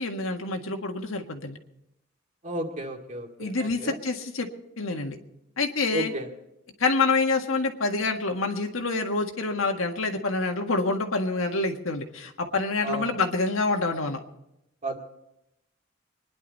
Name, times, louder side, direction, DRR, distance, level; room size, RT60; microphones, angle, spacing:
voice 1, 0.0-1.6 3.4-4.5 4.8-5.2 5.6-6.1 6.8-14.2, left 3 dB, 85° left, 4 dB, 1.7 m, -27 dB
voice 2, 2.4-4.0 5.9-6.3 12.8-13.1 14.8-15.0, right 1 dB, 35° right, 2 dB, 2.2 m, -33 dB
25.0 x 11.0 x 4.2 m, 0.84 s
head